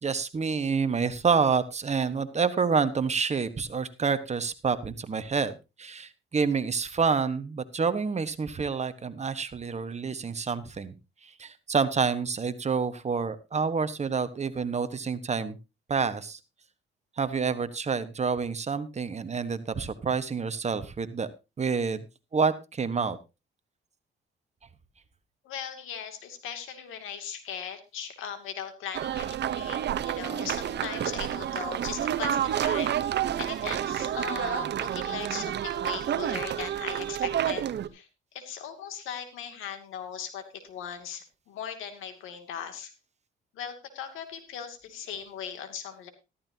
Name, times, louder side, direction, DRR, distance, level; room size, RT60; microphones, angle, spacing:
voice 1, 0.0-10.9 11.2-15.6 15.9-16.4 17.2-21.3 21.6-22.0 22.3-23.2, right 5 dB, 35° right, 12 dB, 1.3 m, -28 dB
voice 2, 25.4-37.6 37.9-42.9 43.5-46.1, left 8 dB, 90° left, 7 dB, 2.6 m, -39 dB
sound 1, 28.9-37.9, right 10 dB, 60° right, 0.9 m, -29 dB
14.0 x 13.0 x 2.8 m, 0.27 s
cardioid pair, 90°, 20 cm